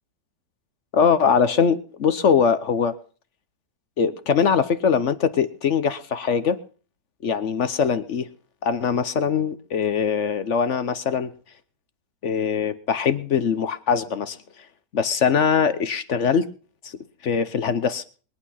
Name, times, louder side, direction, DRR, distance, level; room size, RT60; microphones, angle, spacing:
voice 1, 0.9-3.0 4.0-6.6 7.2-8.3 8.6-11.3 12.2-14.4 14.9-16.5 17.2-18.0, left 6 dB, 55° left, 13 dB, 1.0 m, -22 dB
22.0 x 8.7 x 5.7 m, 0.40 s
omnidirectional pair, 1.8 m